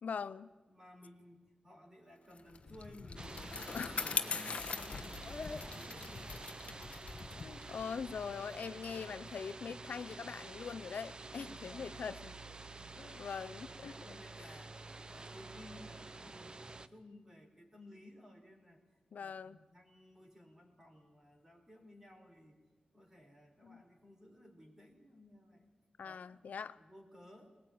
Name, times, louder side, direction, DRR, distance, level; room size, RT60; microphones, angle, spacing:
voice 1, 0.0-0.5 3.7-3.9 7.4-12.4 12.9-13.9 19.1-19.7 23.6-23.8 26.0-26.8, left 6 dB, 85° left, 14 dB, 0.6 m, -42 dB
voice 2, 0.7-6.5 11.2-12.4 12.7-13.2 13.5-14.8 15.1-18.8 19.2-22.6 22.9-25.7 26.0-26.4 26.8-27.5, left 1 dB, 20° right, 3 dB, 4.3 m, -58 dB
Bicycle, 2.4-9.1, left 4 dB, 55° left, 1.1 m, -42 dB
sound 1, 3.2-16.9, right 3 dB, 35° right, 0.8 m, -49 dB
20.5 x 20.0 x 8.7 m, 1.3 s
wide cardioid pair, 110°, 3 cm